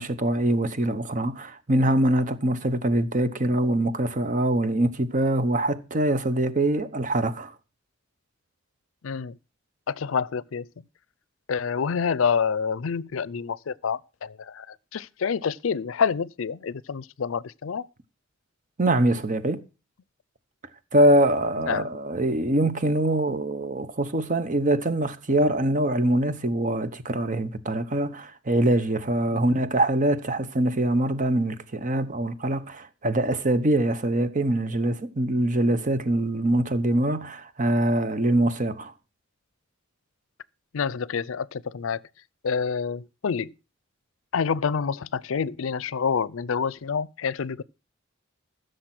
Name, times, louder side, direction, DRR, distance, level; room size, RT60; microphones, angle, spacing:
voice 1, 0.0-7.5 18.8-19.6 20.9-38.9, right 1 dB, 40° right, 1.0 m, -24 dB
voice 2, 9.0-9.4 9.9-10.7 11.5-17.9 21.7-21.9 29.3-29.4 40.7-42.0 42.4-43.5 44.3-47.6, left 6 dB, 85° left, 0.5 m, -27 dB
15.0 x 6.6 x 5.9 m
head